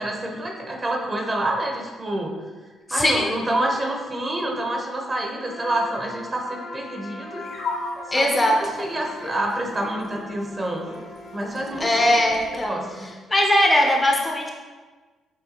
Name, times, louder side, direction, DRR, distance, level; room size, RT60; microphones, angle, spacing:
voice 1, 0.0-2.3 2.9-7.4 8.1-10.9 11.3-12.1 12.5-13.1, right 1 dB, 30° right, 1 dB, 0.7 m, -28 dB
voice 2, 2.9-3.4 8.1-8.6 11.8-12.8 13.3-14.5, left 1 dB, 20° left, 1 dB, 0.5 m, -20 dB
Trumpet, 5.4-11.8, left 1 dB, 90° left, 0.9 m, -41 dB
sound 1, 7.3-12.6, left 3 dB, 60° left, 0.7 m, -36 dB
6.3 x 2.3 x 2.8 m, 1.4 s
cardioid pair, 90°, 0 cm